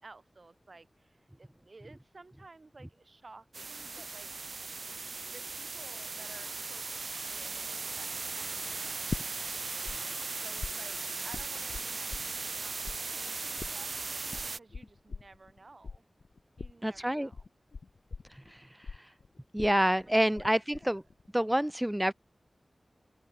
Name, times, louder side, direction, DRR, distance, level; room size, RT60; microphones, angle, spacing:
voice 1, 0.0-4.3 5.2-9.7 10.4-12.8 13.0-16.0 16.6-17.5 19.8-20.8, right 3 dB, 55° right, 7.3 m, -55 dB
sound 1, 3.5-14.6, right 4 dB, 70° right, 2.8 m, -38 dB
sound 2, 9.1-10.0 10.2-12.6 12.8-20.5 20.7-21.3, left 4 dB, 90° left, 1.2 m, -42 dB
voice 2, 16.8-17.3 19.5-21.0 21.3-22.1, equal, 10° right, 0.7 m, -27 dB
open air
wide cardioid pair, 70°, 0 cm